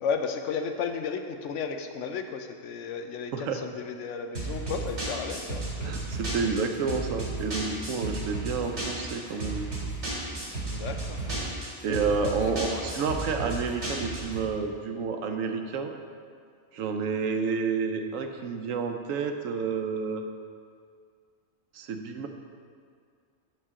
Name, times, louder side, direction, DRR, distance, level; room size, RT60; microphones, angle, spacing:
voice 1, 0.0-6.0 10.6-11.5 12.4-12.5, left 6 dB, 70° left, 6 dB, 0.9 m, -34 dB
sound 1, 4.3-14.4, right 2 dB, 60° right, 2.5 m, -33 dB
voice 2, 5.8-9.7 11.6-15.9 16.7-20.2 21.7-22.3, right 5 dB, 85° right, 5 dB, 1.0 m, -30 dB
8.9 x 6.4 x 3.7 m, 2.2 s
omnidirectional pair, 1.3 m